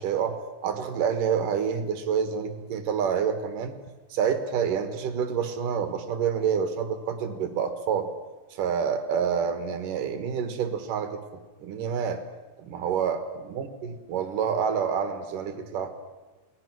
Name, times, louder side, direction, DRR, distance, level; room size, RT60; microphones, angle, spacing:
voice 1, 0.0-3.8 4.1-8.1 8.5-11.2 11.6-12.2 12.6-15.9, right 7 dB, 70° right, 9 dB, 3.1 m, -28 dB
28.0 x 19.0 x 6.2 m, 1.2 s
omnidirectional pair, 3.9 m